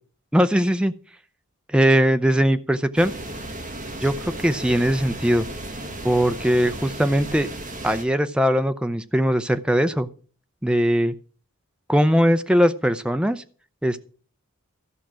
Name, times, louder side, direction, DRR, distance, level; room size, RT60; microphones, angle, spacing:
voice 1, 0.3-0.9 1.7-3.1 4.0-5.5 6.0-7.5 7.8-10.1 10.6-11.1 11.9-13.4 13.8-14.0, equal, 5° right, 9 dB, 0.5 m, -20 dB
sound 1, 3.0-8.0, right 1 dB, 35° right, 1.7 m, -34 dB
14.0 x 5.9 x 6.3 m, 0.42 s
head